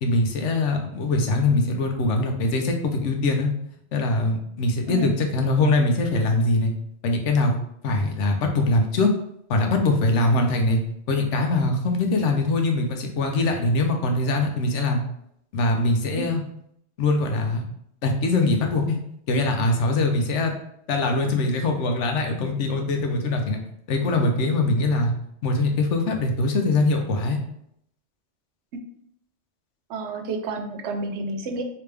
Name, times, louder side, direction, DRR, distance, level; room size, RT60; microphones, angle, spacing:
voice 1, 0.0-3.5 3.9-6.7 7.0-7.5 7.8-9.1 9.5-10.8 11.1-15.0 15.5-16.4 17.0-17.6 18.0-19.0 19.3-20.5 20.9-23.6 23.9-25.1 25.4-27.4, left 2 dB, 85° left, 3 dB, 1.0 m, -22 dB
voice 2, 29.9-31.6, right 3 dB, 75° right, 5 dB, 0.9 m, -30 dB
3.3 x 2.9 x 3.3 m, 0.73 s
omnidirectional pair, 1.2 m